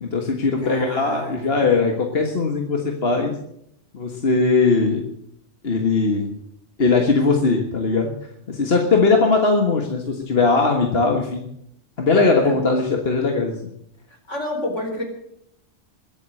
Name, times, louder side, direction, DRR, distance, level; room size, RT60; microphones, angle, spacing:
voice 1, 0.0-3.3 3.9-5.0 5.6-6.3 6.8-8.1 8.5-11.4 12.0-13.7, left 3 dB, 50° left, 2 dB, 1.8 m, -19 dB
voice 2, 0.6-1.6 12.4-12.6 14.3-15.0, left 1 dB, 70° left, 1 dB, 5.0 m, -29 dB
22.0 x 7.8 x 7.7 m, 0.75 s
omnidirectional pair, 1.3 m